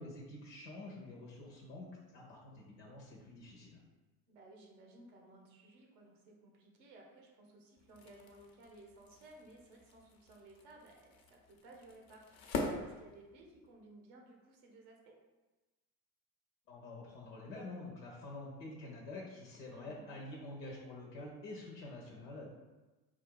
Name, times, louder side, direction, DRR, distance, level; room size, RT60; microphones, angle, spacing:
voice 1, 0.0-3.8 16.7-22.5, left 2 dB, 85° left, -2 dB, 0.9 m, -48 dB
voice 2, 4.3-15.1 19.7-20.1, right 2 dB, 80° right, 0 dB, 1.3 m, -58 dB
sound 1, 7.8-13.8, left 3 dB, 50° left, 0.9 m, -45 dB
4.3 x 2.4 x 4.6 m, 1.2 s
hypercardioid pair, 70°, 49 cm